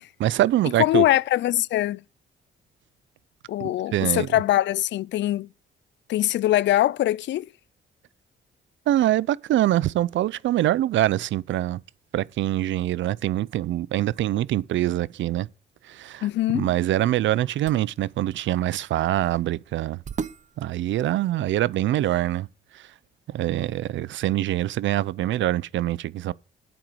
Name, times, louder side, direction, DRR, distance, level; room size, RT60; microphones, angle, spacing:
voice 1, 0.2-1.1 3.6-4.3 8.9-11.8 12.1-15.5 15.8-16.3 16.5-20.0 20.6-22.5 22.7-22.9 23.3-26.3, right 14 dB, 70° right, 0.6 m, -24 dB
voice 2, 0.8-2.0 3.5-5.5 6.1-7.5 16.2-16.7, left 14 dB, 65° left, 0.4 m, -22 dB
sound 1, 17.5-21.9, right 6 dB, 40° right, 0.8 m, -41 dB
9.1 x 7.8 x 6.3 m
cardioid pair, 90°, 20 cm